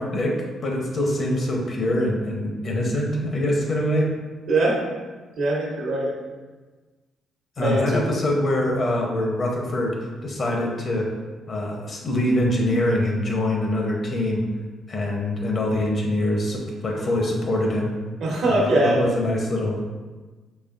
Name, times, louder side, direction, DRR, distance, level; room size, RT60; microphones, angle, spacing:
voice 1, 0.0-4.1 7.6-10.0 10.2-11.1 11.5-14.4 14.9-17.9 18.4-19.9, left 1 dB, 45° left, 0 dB, 0.7 m, -24 dB
voice 2, 4.5-4.8 5.4-6.1 7.6-8.0 18.2-19.0, right 2 dB, 70° right, -3 dB, 1.1 m, -22 dB
4.2 x 3.0 x 2.4 m, 1.3 s
cardioid pair, 90°, 0 cm